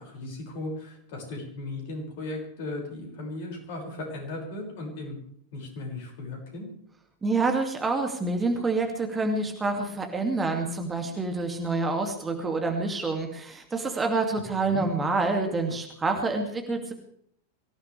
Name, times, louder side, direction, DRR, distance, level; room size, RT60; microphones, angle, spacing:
voice 1, 0.0-5.2 5.5-6.7 14.6-14.9, left 2 dB, 50° left, 1 dB, 6.3 m, -36 dB
voice 2, 7.2-16.9, right 3 dB, 15° right, 3 dB, 2.6 m, -27 dB
24.0 x 16.5 x 3.5 m, 0.64 s
figure-of-eight pair, 90°, 0 cm